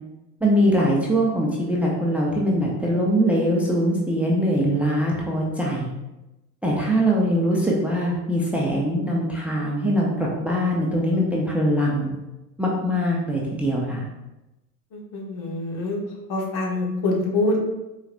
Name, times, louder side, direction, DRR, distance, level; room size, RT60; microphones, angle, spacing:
voice 1, 0.4-5.9 6.6-12.1 12.6-14.1, equal, 5° right, -3 dB, 0.6 m, -22 dB
voice 2, 14.9-16.0 16.3-17.6, left 2 dB, 55° left, 0 dB, 1.1 m, -25 dB
4.7 x 3.2 x 2.5 m, 0.99 s
hypercardioid pair, 85°, 46 cm